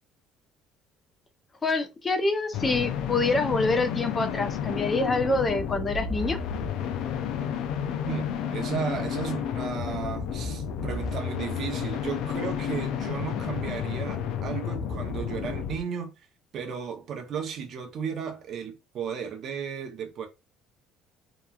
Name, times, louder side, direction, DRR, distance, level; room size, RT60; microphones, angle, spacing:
voice 1, 1.6-6.4, left 3 dB, 25° left, 0.6 m, -26 dB
sound 1, 2.5-15.8, left 8 dB, 70° left, 0.4 m, -31 dB
voice 2, 8.1-16.3 16.5-20.3, right 7 dB, 55° right, 0.7 m, -34 dB
2.9 x 2.2 x 2.4 m
supercardioid pair, 95°, 0 cm